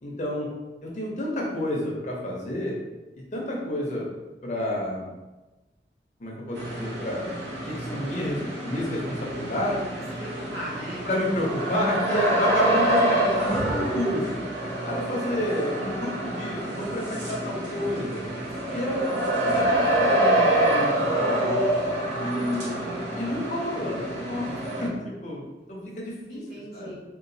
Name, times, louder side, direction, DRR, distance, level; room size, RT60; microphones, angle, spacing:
voice 1, 0.0-0.5 0.8-2.8 3.3-4.1 4.4-5.1 6.2-7.2 7.6-9.8 11.1-14.4 14.8-18.2 18.7-21.6 22.2-22.8 23.1-24.5 24.8-26.4 26.7-26.9, left 1 dB, 40° left, -3 dB, 0.6 m, -30 dB
sound 1, 6.5-24.9, right 1 dB, 80° right, 0.9 m, -26 dB
voice 2, 9.9-11.1 22.4-23.1 26.3-27.0, right 1 dB, 55° right, -8 dB, 1.5 m, -39 dB
3.7 x 2.4 x 2.7 m, 1.1 s
head